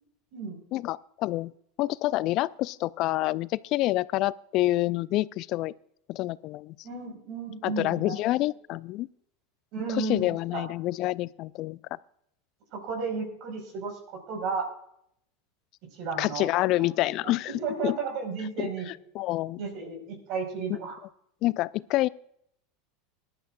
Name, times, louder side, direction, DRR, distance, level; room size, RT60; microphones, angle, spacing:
voice 1, 0.7-1.5 1.8-5.7 6.1-6.7 7.6-9.1 10.0-11.8 16.2-17.5 17.8-18.0 18.6-18.7 19.1-19.6 21.4-22.1, left 17 dB, 50° left, 20 dB, 0.4 m, -27 dB
voice 2, 6.8-8.3 9.7-10.6 12.7-14.7 15.9-16.5 16.8-18.9 19.6-21.0, right 5 dB, 55° right, 3 dB, 4.7 m, -34 dB
21.0 x 11.0 x 2.5 m, 0.72 s
hypercardioid pair, 85°, 0 cm